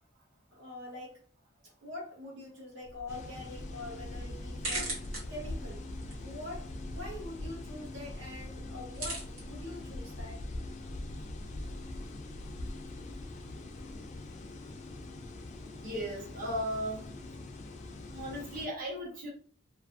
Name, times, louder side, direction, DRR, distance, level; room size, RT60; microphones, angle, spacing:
voice 1, 0.5-1.2 1.6-5.0 5.3-5.8 6.2-10.5, left 2 dB, 70° right, -3 dB, 0.9 m, -44 dB
sound 1, 2.8-14.0, right 2 dB, 90° right, 1.2 m, -45 dB
sound 2, 3.1-18.7, left 2 dB, 35° left, 0.3 m, -42 dB
voice 2, 15.8-17.1 18.1-19.3, equal, 45° right, -3 dB, 0.9 m, -36 dB
2.5 x 2.4 x 2.5 m, 0.43 s
head